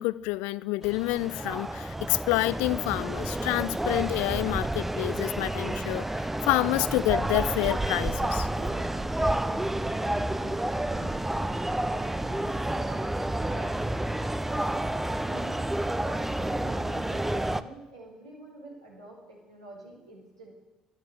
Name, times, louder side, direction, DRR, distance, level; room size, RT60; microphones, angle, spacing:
voice 1, 0.0-6.1 6.4-8.5, left 20 dB, 65° left, 0.3 m, -28 dB
sound 1, 0.8-17.6, right 1 dB, 10° right, 0.6 m, -30 dB
voice 2, 8.5-14.0 14.5-20.5, right 2 dB, 85° right, 3.5 m, -48 dB
12.0 x 9.0 x 7.6 m
figure-of-eight pair, 50°, 3 cm